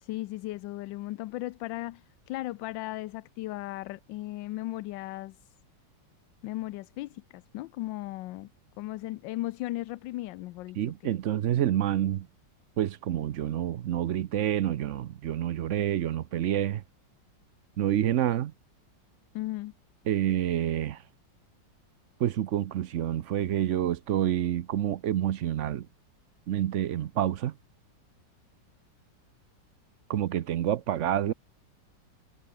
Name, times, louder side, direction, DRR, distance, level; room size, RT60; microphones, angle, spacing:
voice 1, 0.0-5.4 6.4-8.5 8.8-10.8 11.0-11.1 19.3-19.7, left 17 dB, 85° left, 1.3 m, -36 dB
voice 2, 10.8-12.3 12.8-16.8 17.8-18.5 20.1-21.0 22.2-25.9 26.5-27.5 30.1-31.3, right 11 dB, 65° right, 0.7 m, -28 dB
omnidirectional pair, 2.0 m